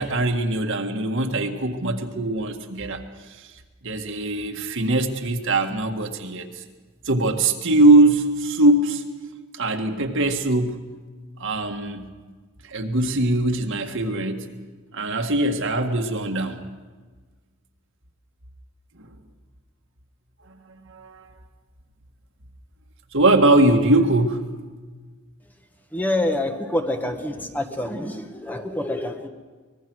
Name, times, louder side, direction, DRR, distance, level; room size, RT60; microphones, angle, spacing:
voice 1, 0.0-3.5 3.8-6.6 7.1-9.0 9.5-10.8 11.4-12.1 12.6-14.5 14.9-16.6 19.0-19.1 20.5-21.2 23.1-24.5, right 2 dB, 60° right, 4 dB, 1.8 m, -21 dB
voice 2, 25.9-29.3, left 1 dB, 10° left, 5 dB, 1.3 m, -26 dB
24.0 x 20.0 x 6.3 m, 1.4 s
head